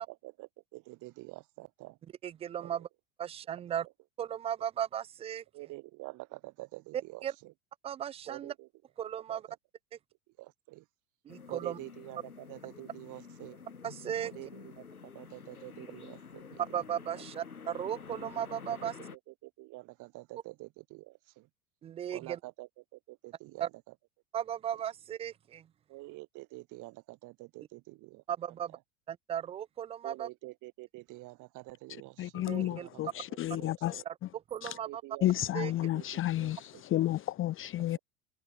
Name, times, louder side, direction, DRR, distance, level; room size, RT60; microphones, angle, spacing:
voice 1, 0.0-2.0 2.6-2.7 5.5-7.5 8.3-8.7 9.3-9.4 10.4-10.8 11.5-13.6 14.2-14.8 15.1-16.6 18.8-18.9 19.3-21.5 22.1-23.7 25.9-28.5 30.0-33.2 33.5-34.0 34.9-35.3 35.6-36.8, right 21 dB, 45° right, 6.6 m, -47 dB
voice 2, 2.2-2.9 3.2-3.9 4.2-5.4 7.2-7.3 7.8-8.5 9.0-9.4 11.3-11.8 13.8-14.3 16.6-18.9 21.8-22.4 23.6-23.7 24.3-25.7 28.3-28.8 29.1-30.3 32.5-32.9 34.1-34.2 34.5-35.0 35.5-35.7, right 10 dB, 15° right, 0.5 m, -36 dB
sound 1, 11.3-19.2, left 5 dB, 80° left, 4.4 m, -49 dB
voice 3, 32.2-34.0 34.6-34.8 35.2-38.0, left 14 dB, 30° left, 1.1 m, -31 dB
figure-of-eight pair, 80°, 43 cm